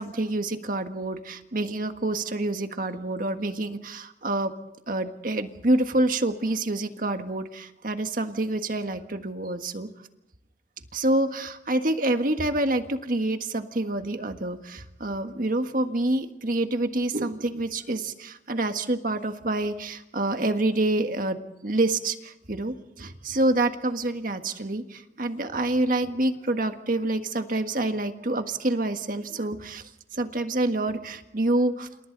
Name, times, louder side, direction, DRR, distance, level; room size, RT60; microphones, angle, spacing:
voice 1, 0.0-4.5 4.9-9.9 10.9-31.9, right 2 dB, 50° right, 7 dB, 1.6 m, -27 dB
29.0 x 28.5 x 4.0 m, 0.89 s
head